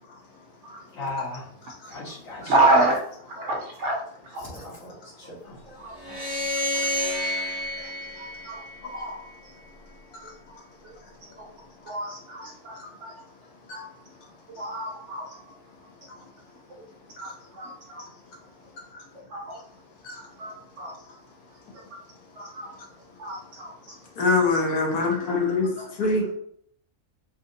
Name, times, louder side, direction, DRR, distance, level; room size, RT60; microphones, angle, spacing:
voice 1, 0.9-1.4 1.9-2.5 4.4-5.8 6.1-6.2 6.6-6.8, left 2 dB, 60° left, -5 dB, 1.6 m, -37 dB
voice 2, 2.4-3.0 3.3-4.6 5.2-5.4 5.8-5.9 6.5-7.0 7.8-7.9 8.2-9.2 11.4-11.5 11.9-13.1 13.7-13.9 14.5-15.4 17.2-18.1 19.3-19.6 20.4-20.9 21.9-22.0 22.4-22.7 23.2-24.0 24.7-24.8 25.8-25.9, right 2 dB, 60° right, -1 dB, 0.8 m, -28 dB
sound 1, 6.0-9.3, left 1 dB, 15° right, 0.9 m, -29 dB
voice 3, 24.2-26.3, left 3 dB, 85° left, 0 dB, 1.3 m, -24 dB
4.0 x 2.5 x 2.6 m, 0.65 s
omnidirectional pair, 1.6 m